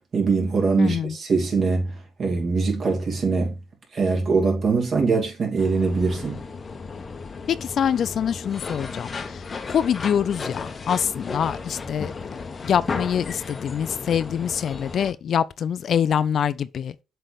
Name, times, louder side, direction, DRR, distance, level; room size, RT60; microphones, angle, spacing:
voice 1, 0.1-3.6 3.9-6.4, right 4 dB, 50° right, 2.7 m, -22 dB
voice 2, 0.8-1.1 7.5-9.4 9.7-12.3 12.6-16.9, left 8 dB, 60° left, 0.4 m, -25 dB
sound 1, 5.6-15.1, left 4 dB, 35° left, 0.8 m, -34 dB
7.5 x 3.4 x 3.9 m
cardioid pair, 90°, 0 cm